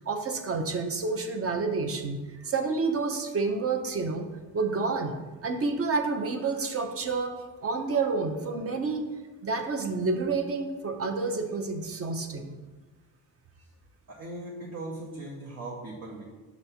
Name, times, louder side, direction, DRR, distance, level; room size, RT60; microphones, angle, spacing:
voice 1, 0.0-4.3 4.5-9.0 9.4-12.5, right 4 dB, 40° right, 5 dB, 0.7 m, -29 dB
voice 2, 14.1-16.2, right 2 dB, 60° right, -3 dB, 1.1 m, -39 dB
7.0 x 3.2 x 5.6 m, 1.2 s
wide cardioid pair, 145°, 36 cm